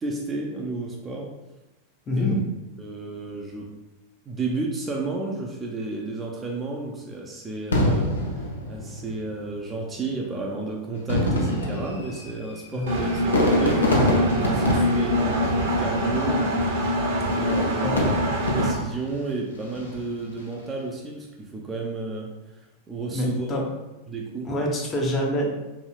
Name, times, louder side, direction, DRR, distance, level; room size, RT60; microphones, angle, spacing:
voice 1, 0.0-1.3 2.2-2.4 2.8-3.7 4.3-13.9 14.4-16.5 17.4-18.2 18.6-23.5 24.1-24.5, right 3 dB, 20° right, -1 dB, 0.4 m, -32 dB
voice 2, 2.1-2.4 12.7-13.1 17.8-18.1 23.1-23.7 24.4-25.5, left 1 dB, 25° left, -1 dB, 0.6 m, -26 dB
Fireworks, 7.7-9.3 10.2-10.3 10.9-16.2 17.3-19.1 19.6-20.1, left 1 dB, 70° left, 0.4 m, -26 dB
Engine, 12.9-18.7, equal, 55° right, 0.7 m, -24 dB
3.0 x 2.7 x 2.3 m, 1.0 s
figure-of-eight pair, 90°, 0 cm